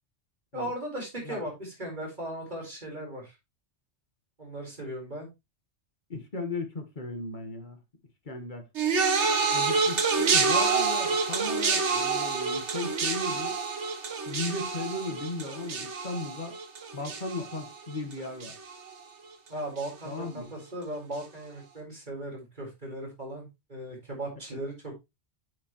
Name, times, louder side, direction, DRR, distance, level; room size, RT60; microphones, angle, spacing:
voice 1, 0.5-3.3 4.4-5.3 19.5-25.0, right 1 dB, 40° right, 4.3 m, -37 dB
voice 2, 6.1-7.8 8.2-8.6 9.5-13.6 14.3-16.5 16.9-18.5 20.0-20.5, left 2 dB, 40° left, 1.5 m, -36 dB
sound 1, 8.8-18.1 18.4-18.9 19.8-19.9, right 4 dB, 70° right, 1.5 m, -27 dB
8.4 x 6.7 x 3.0 m
omnidirectional pair, 1.2 m